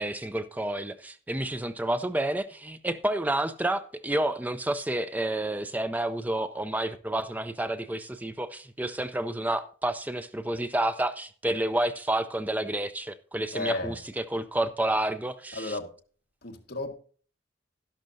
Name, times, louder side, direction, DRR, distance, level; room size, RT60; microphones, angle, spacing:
voice 1, 0.0-15.7, right 1 dB, 10° right, 0.4 m, -30 dB
voice 2, 13.5-14.0 15.5-15.9 16.4-17.0, left 2 dB, 55° left, 1.5 m, -34 dB
12.0 x 11.5 x 2.6 m
head